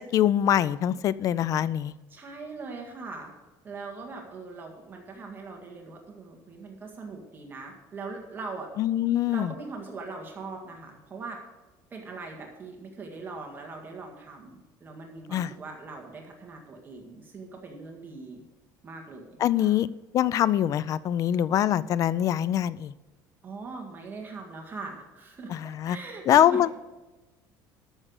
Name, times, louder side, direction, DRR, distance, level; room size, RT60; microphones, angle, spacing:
voice 1, 0.1-1.9 8.8-9.5 15.3-15.5 19.4-19.9 20.1-22.9 25.5-26.0 26.3-26.7, left 11 dB, 40° left, 19 dB, 0.4 m, -23 dB
voice 2, 2.1-3.3 3.6-8.7 9.3-11.4 11.9-18.4 18.8-19.7 23.4-26.6, right 3 dB, 25° right, 1 dB, 1.8 m, -41 dB
13.5 x 6.5 x 6.5 m, 1.1 s
cardioid pair, 150°, 9 cm